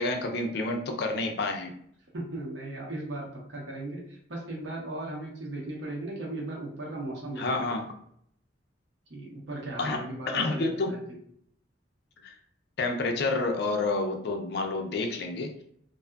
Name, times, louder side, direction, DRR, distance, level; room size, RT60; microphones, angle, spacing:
voice 1, 0.0-1.7 7.4-7.8 9.8-10.0 10.3-11.0 12.2-12.3 12.8-15.5, left 3 dB, 60° left, 4 dB, 0.4 m, -29 dB
voice 2, 2.1-7.6 9.1-11.0, right 2 dB, 85° right, -3 dB, 0.9 m, -37 dB
2.5 x 2.3 x 2.2 m, 0.66 s
head